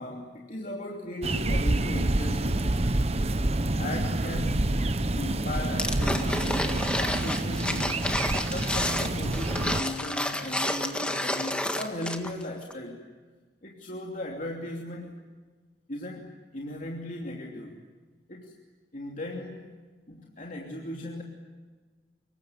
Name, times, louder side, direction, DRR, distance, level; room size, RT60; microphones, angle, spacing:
voice 1, 0.0-2.8 3.7-4.8 5.1-13.1 13.6-15.1 15.9-17.8 18.3-18.5 18.9-19.7 20.1-21.2, left 1 dB, 50° left, -1 dB, 3.0 m, -37 dB
sound 1, 1.2-9.8, right 1 dB, 35° right, 1.0 m, -27 dB
sound 2, 5.8-12.4 12.7-12.8, left 1 dB, 5° left, 1.7 m, -30 dB
26.0 x 23.0 x 9.3 m, 1.4 s
head